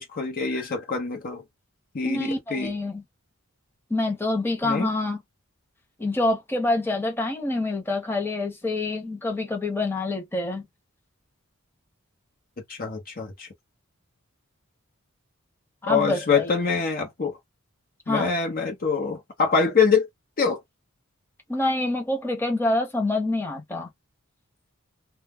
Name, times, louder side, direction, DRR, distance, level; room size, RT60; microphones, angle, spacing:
voice 1, 0.0-1.4 1.9-2.7 4.6-4.9 12.7-13.5 15.9-17.4 18.1-20.1 20.4-20.6, left 5 dB, 40° left, 0.7 m, -24 dB
voice 2, 2.0-3.0 3.9-5.2 6.0-10.7 15.8-16.6 18.1-18.3 21.5-23.9, left 2 dB, 10° left, 0.9 m, -26 dB
2.2 x 2.1 x 3.3 m
head